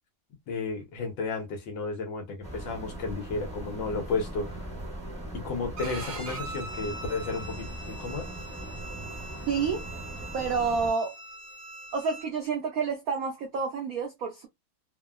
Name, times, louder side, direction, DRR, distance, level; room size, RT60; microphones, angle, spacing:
voice 1, 0.5-4.7 5.4-8.3, left 3 dB, 70° left, 1.5 m, -33 dB
sound 1, 2.4-10.9, right 1 dB, 10° left, 0.4 m, -40 dB
Bowed string instrument, 5.8-12.3, right 2 dB, 55° right, 1.1 m, -42 dB
voice 2, 9.5-9.9 10.3-11.2 11.9-14.5, right 5 dB, 75° right, 0.8 m, -29 dB
3.5 x 2.0 x 2.3 m
omnidirectional pair, 2.1 m